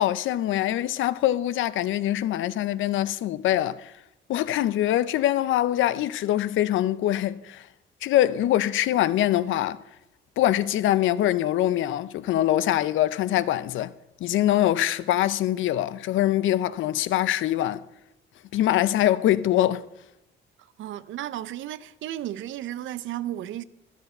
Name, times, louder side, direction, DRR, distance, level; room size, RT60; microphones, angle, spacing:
voice 1, 0.0-3.9 4.3-7.7 8.0-9.8 10.4-13.9 14.2-17.8 18.5-19.8, left 13 dB, 80° left, 0.6 m, -23 dB
voice 2, 20.6-23.6, right 12 dB, 75° right, 0.6 m, -34 dB
12.0 x 11.0 x 5.5 m
cardioid pair, 90°, 20 cm